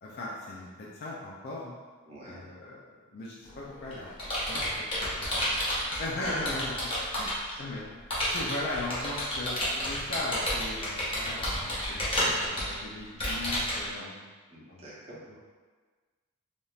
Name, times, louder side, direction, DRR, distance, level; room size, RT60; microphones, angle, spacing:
voice 1, 0.0-1.7 2.2-2.8 3.1-4.1 4.5-5.6 6.0-6.9 7.2-8.0 8.3-14.2 14.7-14.8 15.3-15.4, left 2 dB, 45° left, -5 dB, 0.4 m, -38 dB
voice 2, 2.1-2.4 6.2-6.5 7.4-7.6 13.1-13.3 14.5-15.4, right 1 dB, 30° right, -7 dB, 0.8 m, -47 dB
Computer keyboard, 3.5-7.5 8.1-13.9, equal, 25° left, 0.8 m, -31 dB
3.4 x 2.7 x 2.3 m, 1.4 s
head